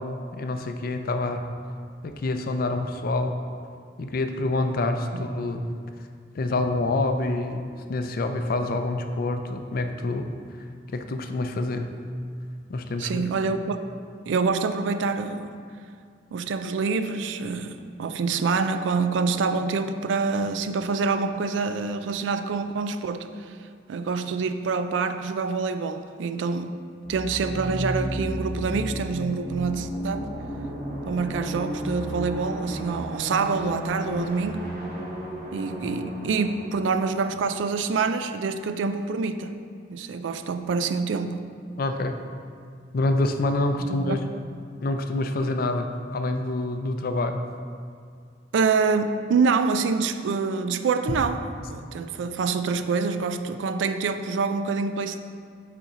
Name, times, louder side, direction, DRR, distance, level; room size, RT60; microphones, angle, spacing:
voice 1, 0.0-1.5 2.0-3.4 4.0-5.6 6.4-10.3 10.9-11.9 12.7-13.2 41.8-42.2 42.9-44.2 44.8-45.9 46.1-47.4, left 2 dB, 50° left, 7 dB, 0.4 m, -27 dB
voice 2, 13.0-13.8 14.3-15.5 16.3-23.3 23.9-26.7 27.1-30.3 31.1-34.7 35.5-39.6 39.9-41.5 43.9-44.2 48.5-55.2, right 4 dB, 85° right, 9 dB, 0.4 m, -26 dB
sound 1, 27.0-38.6, equal, 55° right, 0.9 m, -34 dB
5.3 x 4.2 x 5.0 m, 2.2 s
head